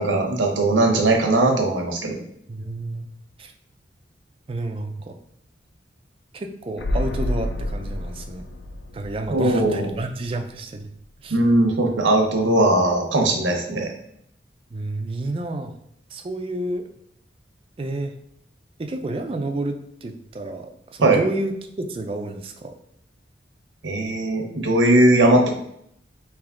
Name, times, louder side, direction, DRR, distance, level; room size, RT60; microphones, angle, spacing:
voice 1, 0.0-2.2 9.3-9.9 11.3-13.9 21.0-21.2 23.8-25.5, right 1 dB, 90° right, 2 dB, 0.8 m, -19 dB
voice 2, 2.5-3.1 3.4-3.5 4.5-5.2 6.3-8.4 8.9-10.9 11.2-11.4 14.7-15.7 16.1-16.9 17.8-18.1 18.8-22.8, right 2 dB, 30° right, 5 dB, 0.3 m, -30 dB
sound 1, 6.8-10.5 10.8-10.9, left 1 dB, 75° left, 0.4 m, -29 dB
3.5 x 3.0 x 3.6 m, 0.72 s
head